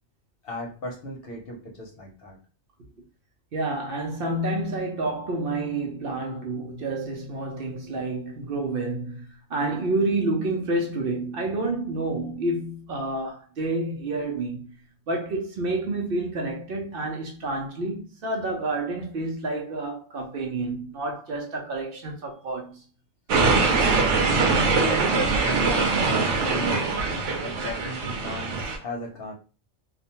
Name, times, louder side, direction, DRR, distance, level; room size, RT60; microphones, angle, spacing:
voice 1, 0.4-2.4 24.4-29.3, left 1 dB, 60° left, 0.9 m, -35 dB
voice 2, 3.5-14.7 15.1-22.8, right 2 dB, 60° right, 0.7 m, -29 dB
sound 1, 23.3-28.8, right 4 dB, 85° right, 0.9 m, -23 dB
2.4 x 2.2 x 2.8 m
omnidirectional pair, 1.2 m